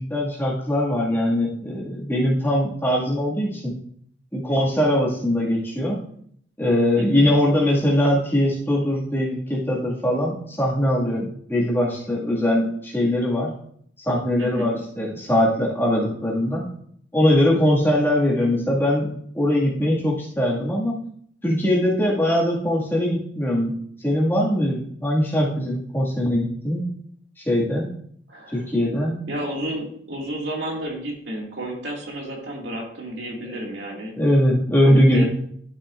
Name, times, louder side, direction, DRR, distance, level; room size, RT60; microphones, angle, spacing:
voice 1, 0.0-3.7 4.3-6.0 6.6-13.5 14.1-16.6 17.1-21.0 21.4-23.7 24.0-26.9 27.4-27.9 28.5-29.3 33.5-33.6 34.2-35.2, left 1 dB, 10° left, -5 dB, 1.9 m, -21 dB
voice 2, 7.0-7.4 14.4-14.7 28.3-28.6 29.3-34.1 34.8-35.2, equal, 70° right, -1 dB, 2.1 m, -31 dB
12.0 x 5.8 x 2.5 m, 0.65 s
head